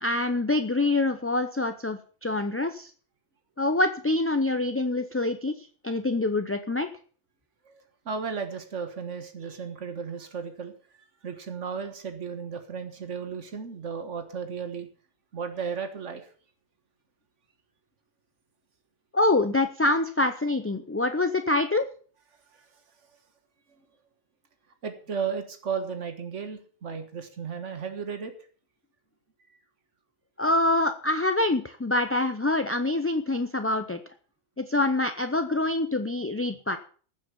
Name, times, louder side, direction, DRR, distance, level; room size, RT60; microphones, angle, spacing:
voice 1, 0.0-2.9 3.6-5.5 5.8-6.9 19.1-21.9 30.4-34.0 34.6-36.8, left 2 dB, 15° left, 8 dB, 0.4 m, -25 dB
voice 2, 7.7-10.7 11.2-14.9 15.3-16.3 22.5-22.7 24.8-28.3, right 6 dB, 85° right, 7 dB, 1.8 m, -34 dB
14.5 x 7.5 x 6.9 m, 0.43 s
omnidirectional pair, 1.2 m